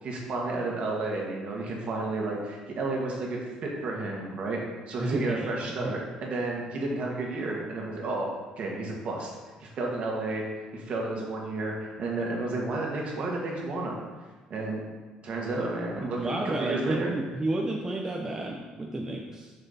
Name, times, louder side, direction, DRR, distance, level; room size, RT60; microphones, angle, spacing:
voice 1, 0.0-8.3 8.6-9.3 9.6-10.4 10.7-14.0 14.5-14.8 15.2-17.2, right 2 dB, 55° right, -1 dB, 1.8 m, -31 dB
voice 2, 5.0-5.5 5.8-5.9 16.0-19.5, right 2 dB, 20° right, -1 dB, 0.8 m, -31 dB
6.8 x 6.2 x 4.2 m, 1.3 s
cardioid pair, 115°, 3 cm